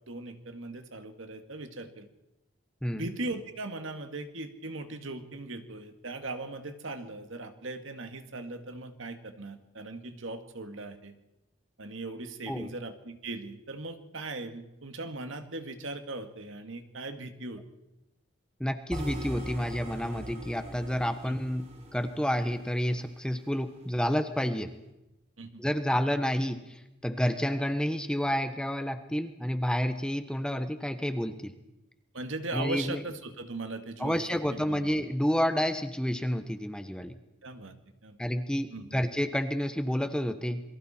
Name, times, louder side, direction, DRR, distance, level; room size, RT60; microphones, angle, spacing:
voice 1, 0.1-2.1 2.9-11.1 11.8-17.6 21.3-21.4 25.4-25.6 32.1-34.9 37.4-37.8 38.0-38.2 38.7-39.0, right 2 dB, 85° right, 7 dB, 2.1 m, -39 dB
voice 2, 18.6-21.7 21.9-24.7 25.6-31.5 32.5-33.0 34.0-37.1 38.2-40.6, equal, 5° left, 8 dB, 1.0 m, -30 dB
sound 1, 18.9-23.0, equal, 30° right, 2.8 m, -41 dB
28.0 x 22.5 x 4.4 m, 0.93 s
head